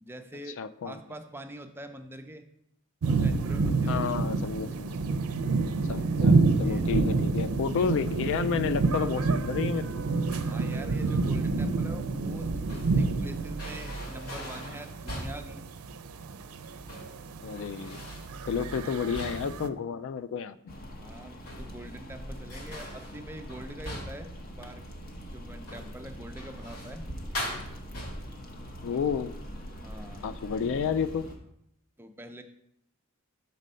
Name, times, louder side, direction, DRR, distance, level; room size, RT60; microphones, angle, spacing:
voice 1, 0.0-0.6 0.8-2.5 3.0-4.0 6.5-7.1 10.3-15.6 21.0-24.8 25.2-27.1 29.7-30.3 32.0-32.4, right 1 dB, 10° right, 6 dB, 0.5 m, -44 dB
voice 2, 0.6-1.0 3.9-4.9 5.8-9.9 17.4-18.0 18.5-20.7 28.8-29.3 30.2-31.3, left 6 dB, 60° left, 14 dB, 0.3 m, -31 dB
sound 1, 3.0-19.7, right 3 dB, 80° right, 0.5 m, -28 dB
sound 2, 10.3-10.7 12.3-13.1 13.6-15.5 16.7-17.2 17.5-18.3 18.7-19.7 21.2-22.0 22.5-24.3 25.6-26.0 26.4-27.0 27.3-28.4, left 1 dB, 80° left, 2.4 m, -41 dB
sound 3, 20.7-31.4, equal, 45° left, 1.0 m, -43 dB
6.3 x 4.2 x 5.4 m, 0.75 s
head